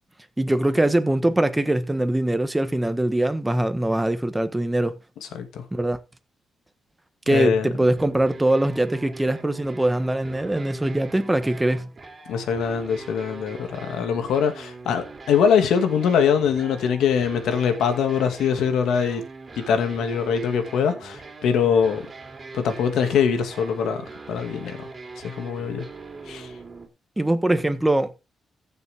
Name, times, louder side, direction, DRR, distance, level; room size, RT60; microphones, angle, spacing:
voice 1, 0.4-4.9 5.7-6.0 7.3-11.9 27.2-28.1, right 1 dB, 10° right, 1.3 m, -22 dB
voice 2, 7.3-7.7 12.3-19.2 19.6-22.0 22.5-24.9 25.2-25.9 26.3-26.5, left 7 dB, 85° left, 2.3 m, -23 dB
sound 1, 7.7-26.9, right 3 dB, 30° right, 3.3 m, -41 dB
15.0 x 7.0 x 3.6 m
cardioid pair, 105°, 0 cm